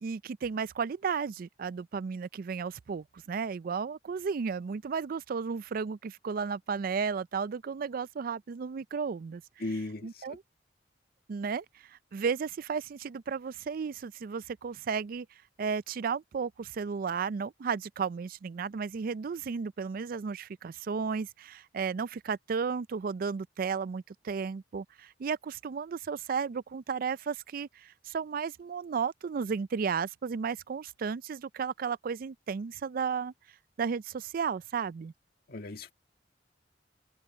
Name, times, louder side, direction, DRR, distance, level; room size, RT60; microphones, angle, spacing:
voice 1, 0.0-9.4 10.0-10.4 11.3-15.3 15.6-33.3 33.8-35.1, right 6 dB, 55° right, 0.4 m, -34 dB
voice 2, 9.6-10.2 35.5-35.9, left 2 dB, 60° left, 1.8 m, -36 dB
open air
head